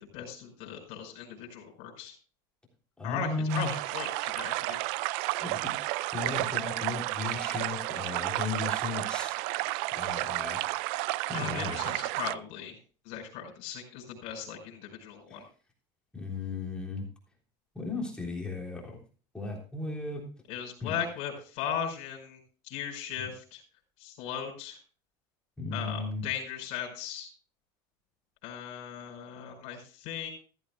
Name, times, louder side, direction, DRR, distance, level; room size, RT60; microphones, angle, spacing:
voice 1, 0.1-2.1 3.0-3.3 3.5-4.8 11.3-12.8 13.1-15.4 20.5-22.4 22.7-23.6 24.0-24.8 25.7-27.3 28.4-30.3, left 8 dB, 65° left, 0 dB, 5.4 m, -38 dB
voice 2, 3.0-3.7 5.4-5.7 6.1-9.4 9.9-10.6 11.3-11.8 15.3-15.4 16.1-17.1 17.7-19.0 19.3-20.3 20.8-20.9 25.6-26.2, left 3 dB, 10° left, -1 dB, 3.5 m, -35 dB
sound 1, 3.5-12.4, right 19 dB, 70° right, 0.4 m, -32 dB
15.0 x 14.5 x 2.3 m, 0.37 s
supercardioid pair, 130°, 11 cm